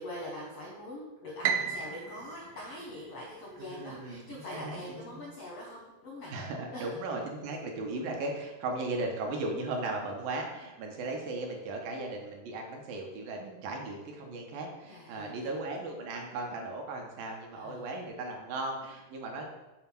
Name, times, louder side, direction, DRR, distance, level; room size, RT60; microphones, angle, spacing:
voice 1, 0.0-6.3 6.7-7.0 14.9-15.6 17.5-17.9, left 1 dB, 70° left, -4 dB, 1.4 m, -43 dB
Piano, 1.4-3.7, right 7 dB, 85° right, 1.9 m, -34 dB
voice 2, 3.6-5.0 6.3-19.4, right 2 dB, 70° right, 1 dB, 2.6 m, -37 dB
8.0 x 4.4 x 5.8 m, 1.1 s
omnidirectional pair, 4.5 m